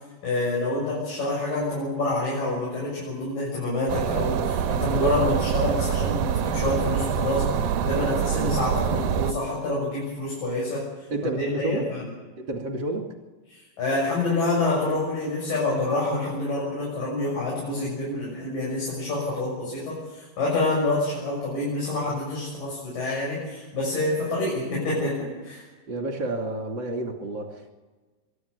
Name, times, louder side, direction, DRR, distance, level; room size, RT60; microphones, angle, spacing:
voice 1, 0.2-10.8 11.4-12.1 13.5-25.6, left 2 dB, 65° left, -5 dB, 8.4 m, -27 dB
sound 1, 3.9-9.3, right 8 dB, 70° right, 2.3 m, -25 dB
voice 2, 11.1-11.9 12.4-13.1 25.9-27.7, right 2 dB, 35° right, 2 dB, 2.9 m, -30 dB
23.0 x 13.5 x 8.3 m, 1.3 s
omnidirectional pair, 4.2 m